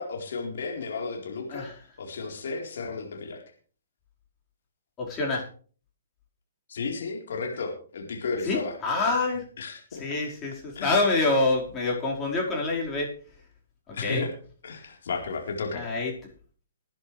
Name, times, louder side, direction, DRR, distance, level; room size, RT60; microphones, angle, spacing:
voice 1, 0.0-3.4 6.7-8.8 9.6-10.0 10.7-11.2 13.9-14.3 14.6-15.9, left 4 dB, 65° left, 2 dB, 4.0 m, -33 dB
voice 2, 5.0-5.5 8.5-9.5 10.0-13.1 13.9-14.2 15.7-16.1, left 3 dB, 20° left, -2 dB, 4.8 m, -26 dB
20.5 x 10.5 x 3.4 m, 0.41 s
hypercardioid pair, 130°, 0 cm